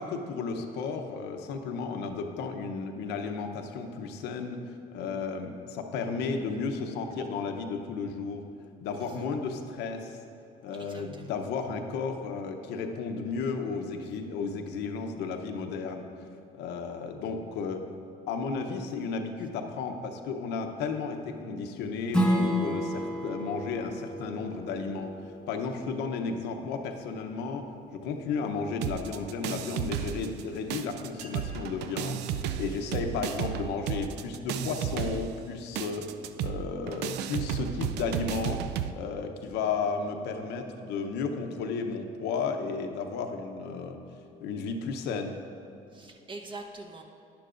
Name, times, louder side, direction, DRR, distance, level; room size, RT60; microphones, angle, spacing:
voice 1, 0.0-4.6 4.9-8.5 8.8-10.2 10.6-16.0 16.5-17.9 18.3-25.1 25.5-27.7 27.9-36.1 36.4-38.6 38.9-44.0 44.4-45.4, left 5 dB, 90° left, 4 dB, 0.8 m, -33 dB
voice 2, 10.7-11.2 14.0-14.1 32.7-32.9 45.9-47.0, right 2 dB, 30° right, 2 dB, 1.0 m, -45 dB
Strum, 22.1-27.3, equal, 5° left, 1.1 m, -31 dB
sound 1, 28.8-30.4 30.7-38.9, right 9 dB, 80° right, 0.4 m, -33 dB
sound 2, 31.1-31.7 32.6-32.7 33.1-33.7 34.2-34.5 35.1-35.4 35.9-37.2, right 2 dB, 50° right, 1.7 m, -54 dB
11.5 x 10.5 x 2.5 m, 2.7 s
cardioid pair, 110°, 17 cm